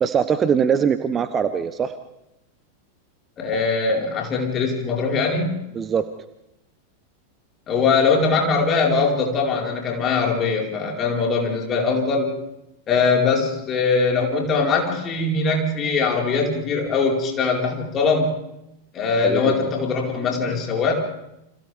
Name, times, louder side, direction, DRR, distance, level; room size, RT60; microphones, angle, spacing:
voice 1, 0.0-1.9 5.7-6.0 19.2-19.5, right 7 dB, 25° right, 12 dB, 0.9 m, -21 dB
voice 2, 3.4-5.6 7.7-12.3 12.9-18.4 18.9-20.9, left 4 dB, 30° left, -1 dB, 4.8 m, -21 dB
29.5 x 26.5 x 3.6 m, 0.87 s
figure-of-eight pair, 90°, 0 cm